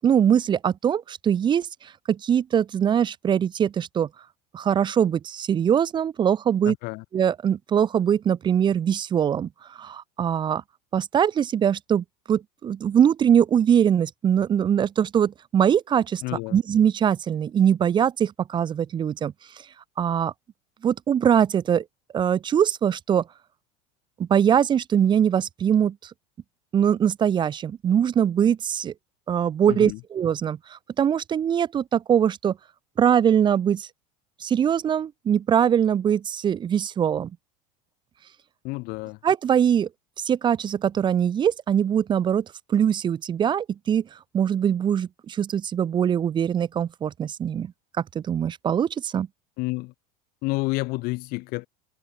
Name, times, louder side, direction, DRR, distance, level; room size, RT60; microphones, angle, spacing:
voice 1, 0.0-4.1 4.5-6.7 7.1-9.5 9.8-10.6 10.9-16.2 16.5-19.3 20.0-20.3 20.8-21.8 22.1-23.2 24.2-25.9 26.7-28.9 29.3-32.6 33.0-33.9 34.4-37.3 39.2-39.9 40.2-44.0 44.3-47.7 48.1-49.3, right 8 dB, 25° right, 1.2 m, -22 dB
voice 2, 6.7-7.0 16.2-16.6 29.7-30.0 38.6-39.2 49.6-49.9 50.4-51.7, left 24 dB, 55° left, 3.0 m, -29 dB
supercardioid pair, 150°, 19 cm